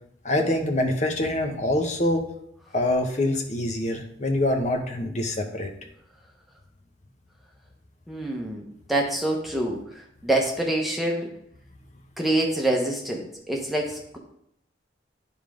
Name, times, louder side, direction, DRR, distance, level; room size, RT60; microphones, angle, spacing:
voice 1, 0.2-2.3 2.7-5.7, left 1 dB, 35° left, 4 dB, 0.9 m, -25 dB
voice 2, 8.1-9.8 10.2-11.3 12.2-14.2, right 1 dB, ahead, -1 dB, 1.1 m, -26 dB
9.8 x 3.6 x 5.0 m, 0.72 s
head